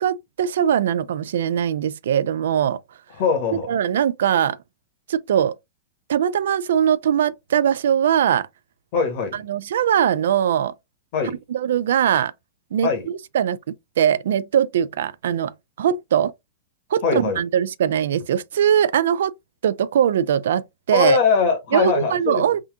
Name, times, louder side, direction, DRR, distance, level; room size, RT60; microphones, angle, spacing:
voice 1, 0.0-2.8 3.7-4.6 5.1-5.6 6.1-8.5 9.3-10.7 11.5-12.3 12.7-13.6 14.0-16.3 16.9-19.3 19.6-21.2 21.7-22.6, right 9 dB, 80° right, 0.4 m, -21 dB
voice 2, 3.2-3.7 8.9-9.4 11.1-11.4 12.8-13.1 17.0-17.4 20.9-22.4, left 5 dB, 35° left, 1.6 m, -21 dB
3.6 x 2.7 x 3.6 m
supercardioid pair, 180°, 0 cm